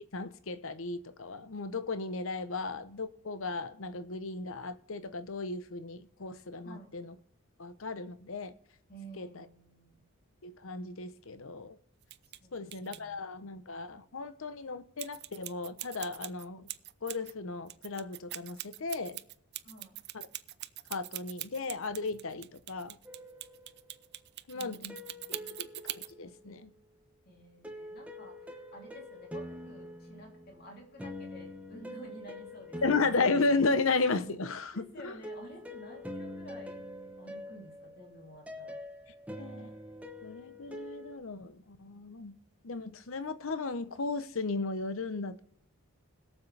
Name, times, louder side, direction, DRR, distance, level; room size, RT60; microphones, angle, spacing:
voice 1, 0.0-7.1 7.6-8.5 9.2-9.4 10.4-11.8 12.5-16.6 17.0-19.2 20.1-20.3 20.9-23.0 24.5-25.0 25.3-26.7 32.8-35.1 39.4-39.7 40.2-42.3 42.6-45.4, left 3 dB, 65° left, 0.8 m, -35 dB
voice 2, 8.9-10.0 12.4-13.2 19.6-20.0 24.5-25.5 27.2-33.0 34.7-36.8 37.2-38.8, equal, 45° left, 3.1 m, -51 dB
sound 1, 12.0-12.4 12.7-13.0 15.0-17.3 17.7-26.1, right 16 dB, 45° right, 0.4 m, -42 dB
sound 2, 23.1-24.1 24.9-26.7 27.6-34.4 35.2-41.2, left 1 dB, 5° right, 1.0 m, -45 dB
21.5 x 7.2 x 3.4 m
head